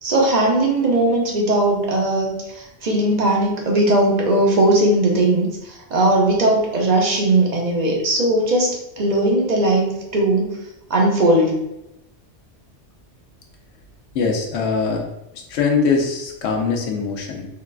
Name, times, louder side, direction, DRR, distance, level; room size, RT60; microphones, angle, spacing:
voice 1, 0.0-10.6 10.9-11.5, right 1 dB, 45° right, -1 dB, 0.6 m, -18 dB
voice 2, 14.1-15.0 15.3-17.5, left 5 dB, 70° left, 2 dB, 0.9 m, -22 dB
3.7 x 2.3 x 2.3 m, 0.86 s
omnidirectional pair, 1.2 m